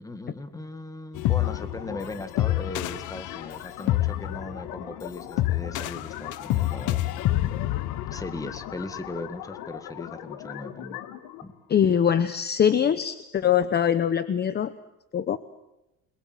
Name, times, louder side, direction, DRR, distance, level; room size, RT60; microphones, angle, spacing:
voice 1, 0.0-7.1 8.1-11.0 11.4-11.5, left 2 dB, 10° left, 10 dB, 1.9 m, -38 dB
sound 1, 1.1-9.3, left 15 dB, 65° left, 0.9 m, -28 dB
sound 2, 1.4-11.4, left 11 dB, 80° left, 2.0 m, -40 dB
voice 2, 11.7-14.7 15.1-15.4, left 8 dB, 30° left, 13 dB, 0.9 m, -22 dB
29.0 x 21.5 x 7.6 m, 0.94 s
cardioid pair, 135°, 33 cm